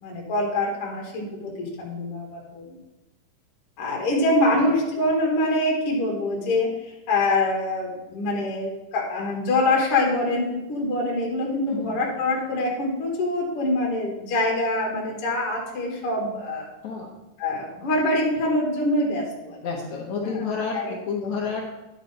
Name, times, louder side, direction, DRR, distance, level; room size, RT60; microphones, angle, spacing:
voice 1, 0.0-2.8 3.8-6.7 7.1-16.7 17.4-19.6 20.3-20.4 20.7-20.9 21.2-21.3, left 2 dB, 50° left, -1 dB, 1.8 m, -25 dB
voice 2, 11.7-12.0 16.8-17.1 19.6-21.6, left 5 dB, 75° left, 0 dB, 1.7 m, -30 dB
11.0 x 6.0 x 4.1 m, 1.0 s
omnidirectional pair, 4.7 m